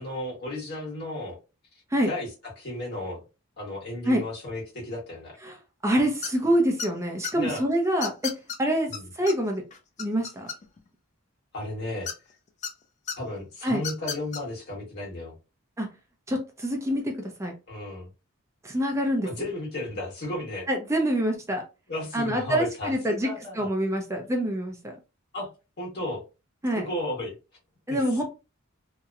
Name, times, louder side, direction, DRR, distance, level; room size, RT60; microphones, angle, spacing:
voice 1, 0.0-1.3 2.1-2.3 2.6-3.2 3.6-5.4 7.3-7.6 8.9-9.1 11.5-12.1 13.2-15.3 17.7-18.1 19.2-20.7 21.9-23.7 25.3-25.5 25.8-26.2 26.7-27.3 27.9-28.2, left 1 dB, 55° left, -3 dB, 1.3 m, -34 dB
voice 2, 5.8-8.1 8.6-8.9 9.2-9.6 10.0-10.5 13.6-13.8 15.8-15.9 16.3-17.1 17.4-17.5 18.6-19.3 20.7-21.6 22.1-23.3 23.6-25.0 26.6-26.9 27.9-28.2, equal, 15° right, 2 dB, 0.5 m, -25 dB
sound 1, 6.2-6.5 6.8-7.3 8.0-8.6 8.9-9.0 9.3-9.4 9.7-10.9 12.1-12.7 13.1-13.2 13.8-14.4, left 6 dB, 35° left, 0.3 m, -33 dB
2.8 x 2.1 x 2.4 m, 0.29 s
head